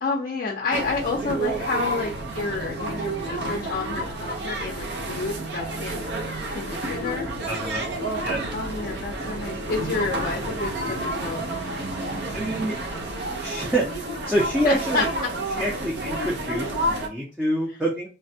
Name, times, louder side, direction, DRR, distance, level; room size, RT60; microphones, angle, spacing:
voice 1, 0.0-7.3 8.5-11.5 14.6-15.0, left 3 dB, 50° left, -1 dB, 0.5 m, -30 dB
sound 1, 0.7-17.1, right 1 dB, 65° right, 0.6 m, -30 dB
voice 2, 7.5-7.8 8.2-8.4 12.3-12.7 13.4-13.8 14.3-15.1 15.6-18.1, right 1 dB, 5° right, -3 dB, 0.5 m, -26 dB
3.2 x 2.1 x 2.6 m, 0.32 s
head